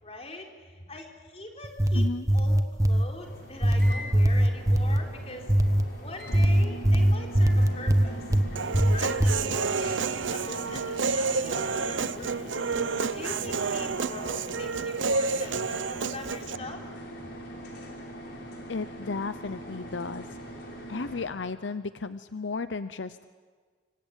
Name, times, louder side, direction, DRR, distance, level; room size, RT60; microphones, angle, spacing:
voice 1, 0.0-2.1 2.3-5.5 5.8-12.5 13.1-16.8, left 2 dB, 35° left, 2 dB, 4.0 m, -42 dB
sound 1, 1.6-3.1 3.6-5.0 5.5-5.9 6.3-8.5 8.7-9.4, right 1 dB, 20° right, 1.2 m, -21 dB
voice 2, 1.9-2.3 18.7-20.3 20.9-23.2, left 4 dB, 75° left, 12 dB, 0.8 m, -34 dB
sound 2, 3.2-21.3, equal, 60° left, 5.7 m, -41 dB
Human voice, 8.6-16.6, right 4 dB, 85° right, 0.8 m, -30 dB
25.5 x 25.0 x 9.0 m, 1.5 s
head